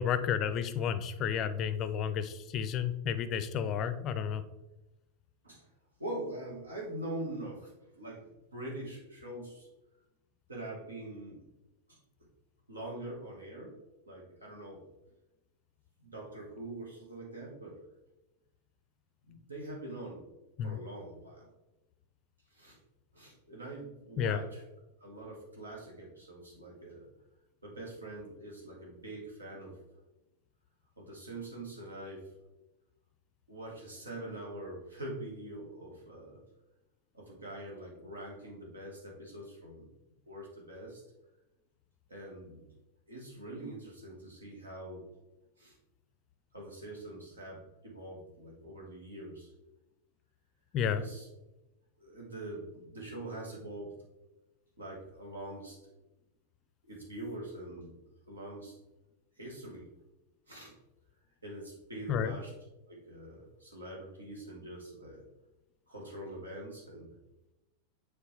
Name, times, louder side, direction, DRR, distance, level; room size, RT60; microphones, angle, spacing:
voice 1, 0.0-4.4 20.6-20.8 24.2-24.4 50.7-51.0 62.1-62.3, left 8 dB, 35° left, 12 dB, 0.5 m, -31 dB
voice 2, 6.0-8.2 8.5-9.7 10.5-11.4 11.9-12.0 12.7-13.8 14.1-14.9 16.0-17.8 19.3-20.2 20.6-21.5 22.5-22.8 23.1-24.6 25.0-27.1 27.6-29.8 31.0-32.3 33.5-36.4 37.1-39.9 40.3-41.0 42.1-42.7 43.1-45.1 45.6-45.8 46.5-49.5 50.9-51.3 52.0-54.0 54.8-55.8 56.9-58.7 59.4-59.9 60.5-60.7 61.4-62.5 62.9-65.2 65.9-67.2, right 1 dB, 75° right, -2 dB, 1.9 m, -44 dB
6.8 x 4.3 x 3.4 m, 0.99 s
figure-of-eight pair, 90°, 0 cm